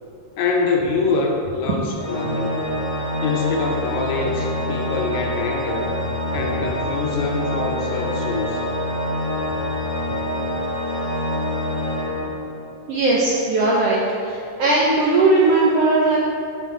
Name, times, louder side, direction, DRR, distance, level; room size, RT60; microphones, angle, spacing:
voice 1, 0.4-2.6 3.2-6.0 6.3-8.7, left 3 dB, 75° left, 1 dB, 1.9 m, -24 dB
Organ, 2.0-12.8, left 1 dB, 45° left, 1.0 m, -26 dB
voice 2, 12.9-16.2, right 2 dB, 75° right, -5 dB, 1.4 m, -18 dB
9.5 x 4.4 x 4.5 m, 2.5 s
omnidirectional pair, 3.6 m